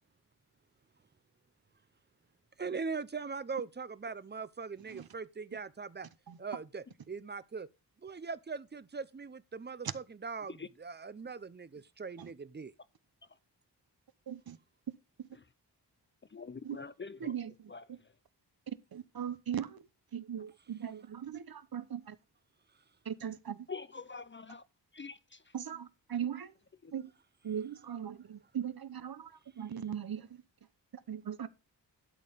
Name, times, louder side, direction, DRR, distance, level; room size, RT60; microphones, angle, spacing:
voice 1, 2.6-6.1 6.4-7.7 8.0-12.7, right 5 dB, 25° right, 0.7 m, -41 dB
voice 2, 16.3-17.3 17.7-17.8 23.7-24.6 24.9-25.4 26.8-26.9, left 5 dB, 30° left, 0.5 m, -44 dB
voice 3, 17.2-18.0 18.9-19.8 20.1-22.2 23.1-23.6 25.5-26.5 26.9-27.1 27.4-29.3 29.6-30.4 31.1-31.5, right 9 dB, 55° right, 0.9 m, -39 dB
12.0 x 4.5 x 5.2 m
wide cardioid pair, 90°, 42 cm